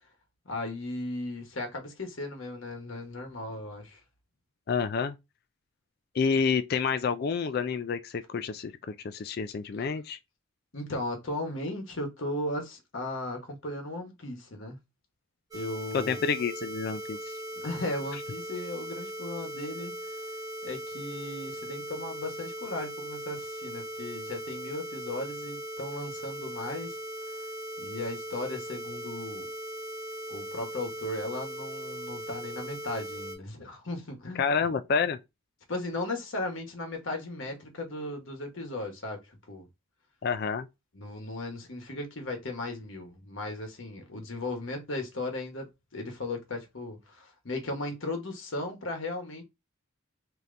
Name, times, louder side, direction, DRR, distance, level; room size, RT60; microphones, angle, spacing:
voice 1, 0.4-4.0 9.8-9.9 10.7-14.8 15.5-16.2 17.5-20.1 20.6-27.0 27.8-29.5 30.3-34.5 35.7-39.7 40.9-49.4, left 2 dB, 60° left, 1.1 m, -36 dB
voice 2, 4.7-5.1 6.1-10.2 15.9-17.2 34.4-35.2 40.2-40.7, left 5 dB, 45° left, 0.3 m, -28 dB
sound 1, 15.5-33.4, equal, 15° right, 0.9 m, -39 dB
3.8 x 2.8 x 3.2 m
head